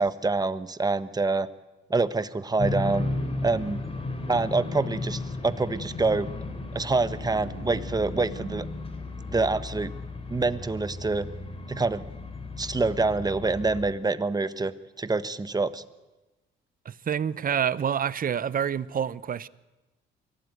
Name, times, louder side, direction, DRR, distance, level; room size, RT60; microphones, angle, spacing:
voice 1, 0.0-1.5 1.9-3.0 3.4-3.8 4.3-6.3 6.7-8.7 9.3-9.9 10.3-11.3 11.7-12.0 12.6-14.7 15.0-15.8, right 3 dB, 20° right, 1.2 m, -26 dB
sound 1, 2.6-13.9, left 2 dB, 30° left, 3.6 m, -34 dB
voice 2, 16.8-19.5, right 8 dB, 45° right, 0.8 m, -27 dB
23.5 x 17.0 x 9.3 m
cardioid pair, 90°, 20 cm